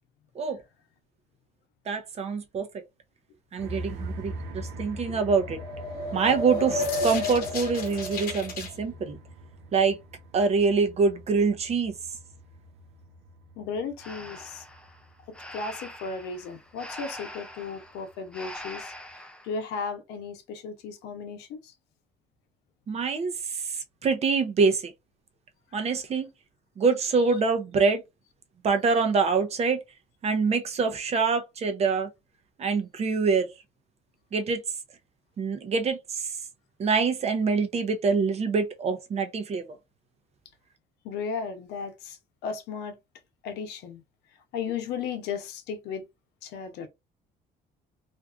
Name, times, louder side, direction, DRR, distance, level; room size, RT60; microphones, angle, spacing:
voice 1, 1.9-2.7 3.5-4.3 4.8-5.6 6.1-9.2 9.7-10.0 10.3-11.9 22.9-23.3 24.0-24.8 25.7-26.3 26.8-28.0 28.6-29.8 30.2-32.1 32.6-33.5 34.3-34.6 35.4-36.2 36.8-39.6, right 5 dB, 40° right, 0.6 m, -25 dB
sound 1, 3.6-19.1, right 1 dB, 85° right, 0.6 m, -43 dB
sound 2, 5.4-8.7, left 2 dB, 60° left, 0.8 m, -31 dB
voice 2, 13.6-14.6 15.5-21.7 41.0-42.9 43.4-44.0 44.5-46.1 46.4-46.9, left 5 dB, 90° left, 0.7 m, -35 dB
Breathing, 14.0-19.5, left 1 dB, 5° left, 0.5 m, -43 dB
2.5 x 2.4 x 2.4 m
cardioid pair, 110°, 17 cm